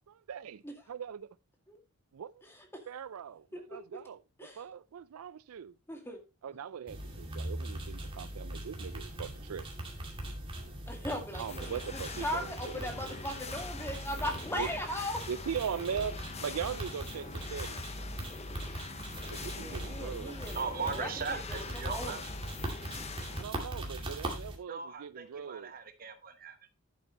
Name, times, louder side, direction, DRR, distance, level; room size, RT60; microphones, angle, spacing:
voice 1, 0.0-1.4 2.1-2.4 2.9-4.2 4.6-5.8 6.4-9.7 11.3-12.8 14.6-14.7 15.3-17.8 19.3-20.4 23.3-25.7, right 7 dB, 75° right, 0.4 m, -40 dB
voice 2, 3.5-4.0 4.4-4.6 5.9-6.2 6.5-6.6 10.9-11.7 12.2-15.2 19.6-21.6 21.8-22.1, left 1 dB, 10° left, 2.1 m, -38 dB
sound 1, 6.9-24.5, right 1 dB, 25° right, 2.4 m, -41 dB
sound 2, 11.5-23.4, left 4 dB, 30° left, 0.8 m, -45 dB
voice 3, 20.5-22.2 24.7-26.7, right 5 dB, 40° right, 1.0 m, -38 dB
11.0 x 8.6 x 3.0 m
head